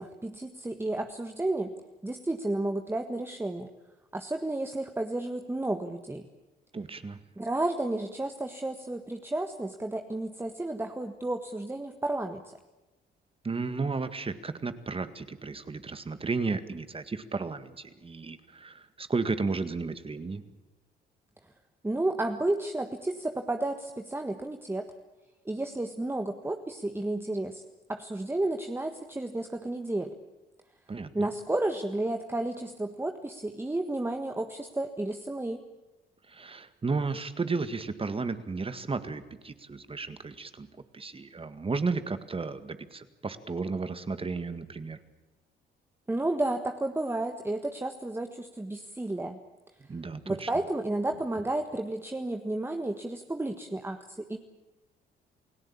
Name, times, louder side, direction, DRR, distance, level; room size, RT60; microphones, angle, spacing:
voice 1, 0.0-1.7 2.0-3.7 4.1-6.3 7.4-12.6 21.8-24.9 25.4-27.6 27.9-30.1 31.1-35.6 46.1-49.4 50.2-54.4, right 2 dB, 10° right, 5 dB, 1.6 m, -32 dB
voice 2, 6.7-7.2 13.4-20.4 30.9-31.3 36.3-40.7 40.9-45.0 49.9-50.5, right 4 dB, 30° right, 11 dB, 1.9 m, -33 dB
29.0 x 17.0 x 8.7 m, 1.1 s
cardioid pair, 90°, 20 cm